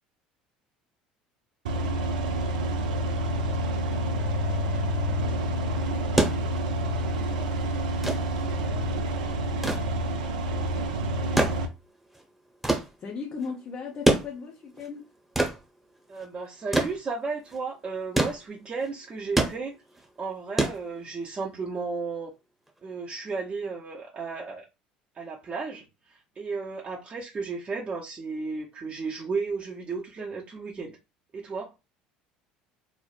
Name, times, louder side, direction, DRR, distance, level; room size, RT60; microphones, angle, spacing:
sound 1, 1.7-11.7, right 1 dB, 80° right, 0.5 m, -28 dB
sound 2, 6.2-21.4 22.7-22.8, right 2 dB, 5° right, 1.0 m, -29 dB
voice 1, 13.0-15.1, left 5 dB, 40° left, 0.8 m, -36 dB
voice 2, 16.1-19.7 20.2-22.3 22.8-24.7 25.1-25.8 26.1-31.0 31.3-31.7, right 4 dB, 30° right, 0.7 m, -34 dB
3.2 x 2.0 x 2.5 m
hypercardioid pair, 70°, 4 cm